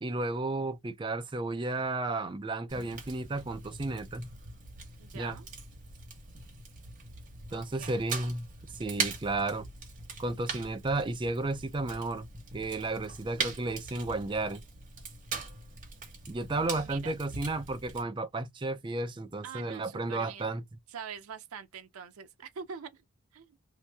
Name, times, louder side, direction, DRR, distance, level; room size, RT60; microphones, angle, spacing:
voice 1, 0.0-4.3 5.1-5.4 7.5-8.5 8.7-9.6 10.2-12.2 12.5-14.6 16.3-20.6, right 2 dB, 25° right, 0.4 m, -33 dB
Fire, 2.7-18.0, right 5 dB, 40° right, 1.2 m, -41 dB
voice 2, 5.0-5.5 7.5-8.1 16.5-17.1 19.4-20.5 20.9-23.0 23.3-23.6, right 7 dB, 80° right, 0.5 m, -45 dB
2.8 x 2.6 x 3.3 m
head